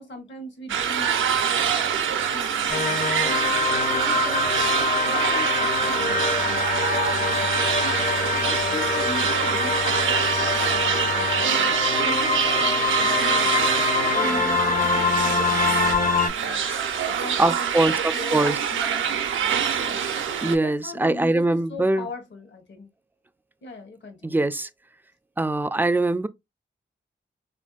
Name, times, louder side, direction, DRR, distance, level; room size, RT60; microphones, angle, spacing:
voice 1, 0.0-3.5 3.9-7.5 7.8-8.0 8.3-20.2 20.6-22.9 23.6-24.5, left 2 dB, 60° left, 1.0 m, -40 dB
sound 1, 0.7-20.6, right 8 dB, 70° right, 0.4 m, -25 dB
sound 2, 2.7-16.3, left 4 dB, 40° left, 0.6 m, -25 dB
voice 2, 17.4-18.6 20.4-22.1 24.2-24.7 25.4-26.3, right 2 dB, 10° right, 0.3 m, -22 dB
3.0 x 2.5 x 2.3 m
cardioid pair, 45°, 21 cm